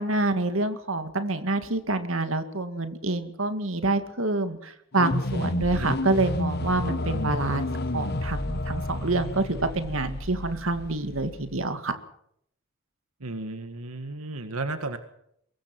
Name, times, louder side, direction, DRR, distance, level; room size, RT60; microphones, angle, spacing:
voice 1, 0.0-7.7 7.9-11.9, right 2 dB, 70° right, 9 dB, 2.2 m, -27 dB
sound 1, 4.9-11.6, left 1 dB, 50° left, 1.2 m, -31 dB
voice 2, 13.2-15.0, right 2 dB, 90° right, 8 dB, 1.8 m, -33 dB
24.0 x 21.5 x 6.2 m, 0.71 s
head